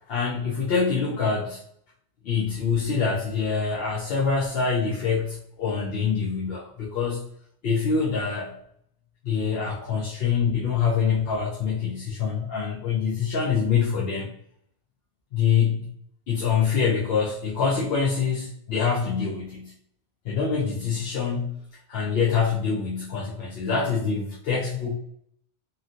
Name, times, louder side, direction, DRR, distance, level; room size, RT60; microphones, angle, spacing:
voice 1, 0.1-1.6 2.2-7.3 7.6-8.6 9.2-14.3 15.3-15.9 16.3-19.7 20.2-21.6 21.9-24.9, left 6 dB, 65° left, -3 dB, 0.8 m, -25 dB
3.0 x 2.6 x 2.5 m, 0.69 s
omnidirectional pair, 1.1 m